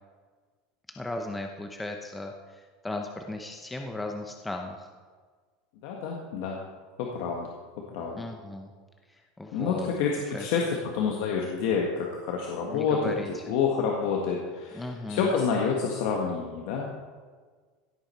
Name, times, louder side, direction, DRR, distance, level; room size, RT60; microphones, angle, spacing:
voice 1, 1.0-2.3 2.8-4.9 8.1-8.7 9.4-9.9 10.3-10.5 12.7-13.3 14.7-15.3, left 2 dB, 5° left, 3 dB, 0.7 m, -36 dB
voice 2, 5.8-6.6 7.0-7.5 7.9-8.2 9.5-16.9, left 5 dB, 65° left, -1 dB, 1.7 m, -28 dB
16.5 x 8.7 x 4.5 m, 1.5 s
supercardioid pair, 160°, 0 cm